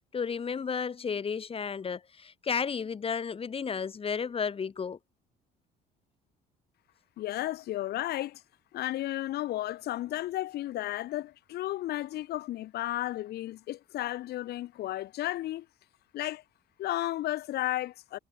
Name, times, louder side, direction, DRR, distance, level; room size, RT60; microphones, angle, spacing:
voice 1, 0.1-5.0, left 6 dB, 35° left, 4.6 m, -33 dB
voice 2, 7.2-8.4 8.7-15.7 16.1-16.4 16.8-18.2, left 14 dB, 70° left, 2.2 m, -33 dB
cardioid pair, 110°, 17 cm